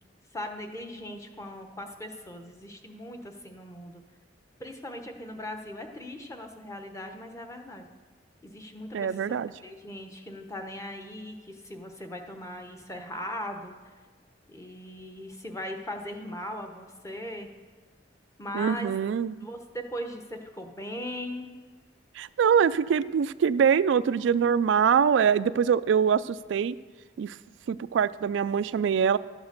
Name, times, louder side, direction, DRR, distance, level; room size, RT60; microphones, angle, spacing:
voice 1, 0.3-4.0 4.6-7.9 8.4-9.4 9.6-13.7 14.5-17.5 18.4-18.9 19.4-21.5, left 1 dB, 15° left, 4 dB, 0.9 m, -39 dB
voice 2, 8.9-9.5 18.5-19.5 22.2-26.8 27.2-27.3 27.7-29.2, right 7 dB, 80° right, 15 dB, 0.3 m, -24 dB
12.0 x 8.0 x 6.6 m, 1.4 s
head